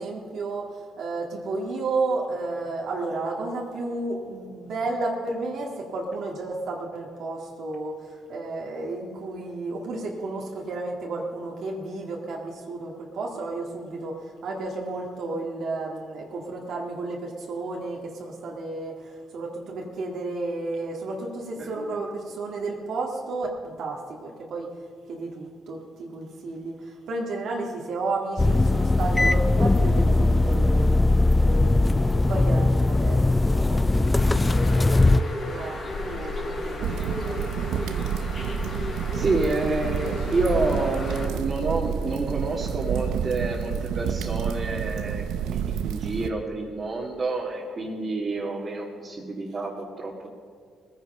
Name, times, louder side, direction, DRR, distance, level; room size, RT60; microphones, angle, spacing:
voice 1, 0.0-14.1 14.4-23.5 23.8-24.7 25.1-31.0 31.4-37.5, right 3 dB, 70° right, -1 dB, 2.0 m, -32 dB
voice 2, 21.6-22.0 39.1-50.3, right 3 dB, 35° right, -3 dB, 2.1 m, -29 dB
sound 1, 28.4-35.2, left 2 dB, 20° left, 0.4 m, -20 dB
Bird, 34.2-41.3, left 2 dB, 50° left, 4.0 m, -33 dB
sound 2, 36.8-46.3, right 8 dB, 85° right, 0.6 m, -29 dB
19.0 x 9.7 x 5.5 m, 2.1 s
cardioid pair, 80°, 0 cm